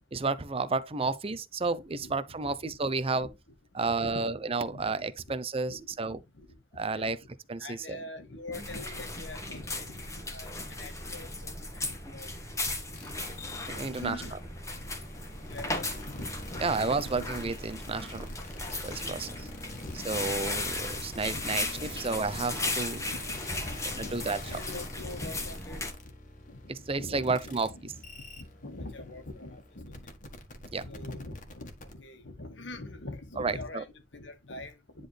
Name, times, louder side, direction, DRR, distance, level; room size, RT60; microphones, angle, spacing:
voice 1, 0.1-3.3 3.8-6.2 6.8-7.2 7.5-8.0 13.7-14.2 16.6-18.2 18.8-19.3 20.1-23.0 24.0-24.6 26.7-27.7 30.7-30.8 33.4-33.8, right 3 dB, 30° right, 0.6 m, -31 dB
voice 2, 2.4-2.8 3.1-3.3 4.0-4.3 4.7-4.8 5.2-5.3 5.6-5.8 6.1-6.6 6.9-7.1 7.5-12.3 12.7-12.8 13.8-14.9 15.5-16.8 17.1-17.3 19.0-19.1 19.4-19.5 19.8-19.9 20.2-20.3 21.3-22.4 23.0-25.9 26.5-26.6 26.9-28.1 28.4-30.1 30.7-35.1, left 2 dB, 75° left, 1.7 m, -44 dB
sound 1, 8.5-25.9, left 2 dB, 15° left, 1.5 m, -36 dB
sound 2, 12.9-31.9, left 2 dB, 45° left, 1.7 m, -46 dB
10.0 x 4.0 x 3.3 m
head